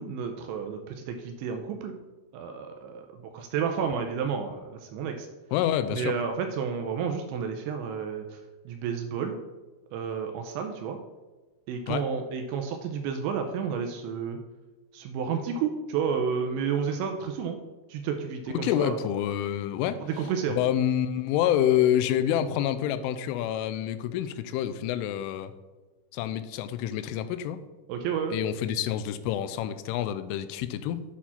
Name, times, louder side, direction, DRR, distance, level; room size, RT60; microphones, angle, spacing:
voice 1, 0.0-1.9 2.3-5.3 5.9-8.4 8.7-9.4 9.9-11.0 11.7-14.4 14.9-17.6 17.9-19.0 20.1-20.6 27.9-28.4, right 6 dB, 85° right, 4 dB, 2.7 m, -31 dB
voice 2, 5.5-6.1 11.9-12.0 18.5-20.0 20.6-25.5 26.1-27.6 28.3-31.0, left 11 dB, 85° left, 11 dB, 3.0 m, -27 dB
8.4 x 4.5 x 5.7 m, 1.2 s
omnidirectional pair, 5.6 m